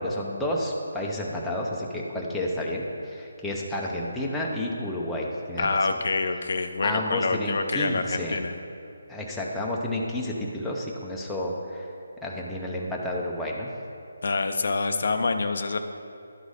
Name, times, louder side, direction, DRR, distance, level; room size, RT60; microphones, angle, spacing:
voice 1, 0.0-5.9 6.8-8.4 9.1-11.9 12.2-13.7, left 1 dB, 5° left, -4 dB, 0.7 m, -30 dB
voice 2, 5.6-8.5 14.2-15.8, left 3 dB, 60° left, 7 dB, 0.5 m, -26 dB
11.5 x 4.0 x 4.8 m, 2.7 s
hypercardioid pair, 165°, 0 cm